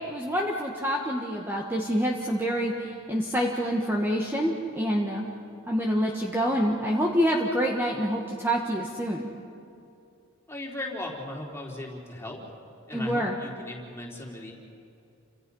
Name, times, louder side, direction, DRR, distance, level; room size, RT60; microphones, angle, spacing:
voice 1, 0.1-5.3 5.7-9.3 12.9-13.4, equal, 10° right, -1 dB, 1.6 m, -27 dB
voice 2, 10.5-12.4 12.9-14.5, left 1 dB, 10° left, -2 dB, 3.6 m, -37 dB
29.5 x 26.5 x 5.6 m, 2.6 s
head